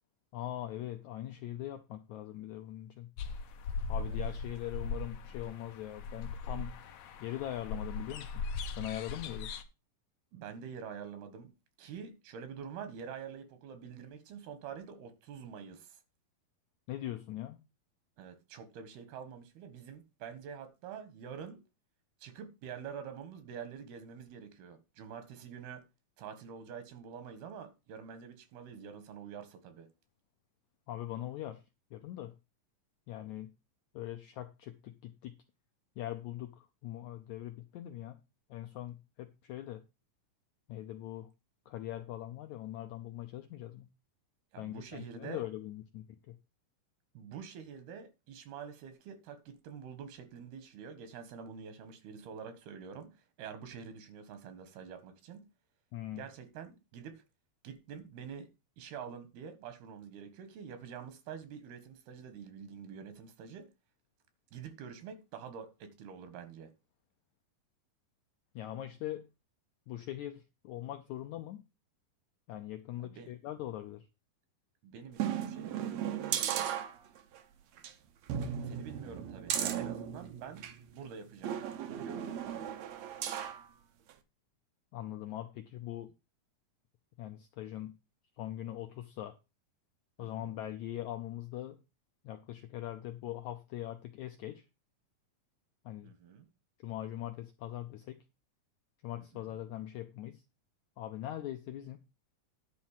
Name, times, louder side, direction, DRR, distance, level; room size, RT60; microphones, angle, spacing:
voice 1, 0.3-3.1 3.9-6.7 7.2-8.4 8.8-9.5 16.9-17.6 30.9-31.6 31.9-32.3 33.1-33.5 33.9-35.4 36.0-38.2 38.5-39.8 40.7-41.3 41.7-43.9 44.6-46.3 55.9-56.3 68.5-69.3 69.9-71.6 72.5-74.1 84.9-86.1 87.2-87.9 88.4-89.4 90.2-91.8 92.2-94.7 95.8-96.1 96.8-98.2 99.0-100.4 101.0-102.0, left 13 dB, 90° left, 1.6 m, -41 dB
sound 1, 3.2-9.6, left 4 dB, 70° left, 1.6 m, -39 dB
voice 2, 10.3-11.5 11.8-16.0 18.2-21.6 22.2-25.8 26.2-29.9 44.5-45.4 47.2-55.5 56.2-57.2 57.6-58.5 58.8-63.7 64.5-66.7 73.0-73.3 74.8-76.7 78.7-82.3 90.2-90.5 96.0-96.5 99.2-99.6, right 7 dB, 90° right, 3.5 m, -47 dB
sound 2, 75.2-77.4 77.8-77.9 78.3-80.8 81.4-83.6 84.1-84.2, right 9 dB, 70° right, 1.6 m, -36 dB
10.5 x 4.4 x 7.5 m
omnidirectional pair, 4.3 m